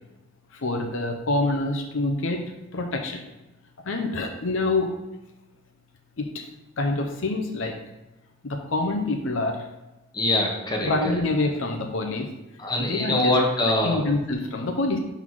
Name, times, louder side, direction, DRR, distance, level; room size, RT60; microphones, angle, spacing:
voice 1, 0.5-3.3 3.9-4.9 6.2-6.4 6.8-7.8 8.4-9.6 10.8-12.3 12.8-13.3 13.8-15.0, left 2 dB, 70° left, 2 dB, 0.7 m, -26 dB
voice 2, 10.1-11.2 12.6-14.0, left 1 dB, 20° left, -1 dB, 0.9 m, -23 dB
5.6 x 4.0 x 4.6 m, 0.99 s
head